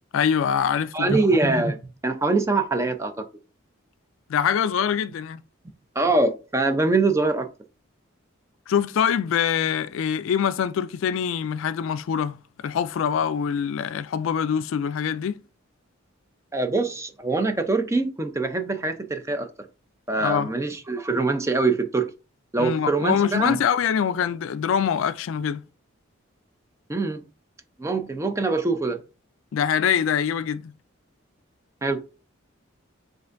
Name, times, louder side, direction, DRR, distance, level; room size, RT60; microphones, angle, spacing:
voice 1, 0.1-1.2 4.3-5.4 8.7-15.4 20.2-20.5 22.6-25.6 29.5-30.7, left 8 dB, 70° left, 0.3 m, -24 dB
voice 2, 0.9-1.8 2.0-3.3 6.0-7.5 16.5-19.5 20.1-22.1 22.5-23.6 26.9-27.2 27.8-29.0 31.8-32.0, right 3 dB, 15° right, 0.4 m, -23 dB
7.4 x 2.5 x 2.5 m
head